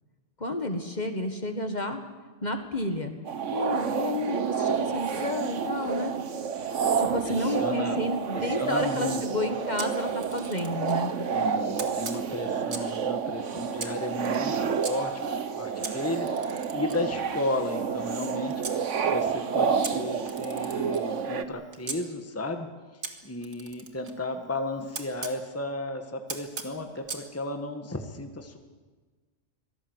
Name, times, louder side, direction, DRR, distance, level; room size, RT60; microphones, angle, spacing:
voice 1, 0.4-2.0 2.4-3.1 3.5-6.1 7.0-11.2, left 1 dB, 35° left, 6 dB, 1.8 m, -31 dB
sound 1, 3.3-21.4, right 6 dB, 65° right, 1.4 m, -29 dB
voice 2, 7.3-8.0 8.3-9.2 11.3-15.1 15.5-18.8 19.1-22.7 23.2-28.6, left 1 dB, 10° left, 6 dB, 1.5 m, -34 dB
Camera, 9.8-11.0 11.8-13.0 13.8-14.9 15.8-18.8 19.8-22.0 23.0-25.4 26.3-27.3, right 4 dB, 80° right, 2.3 m, -40 dB
25.0 x 18.0 x 8.1 m, 1.4 s
omnidirectional pair, 1.4 m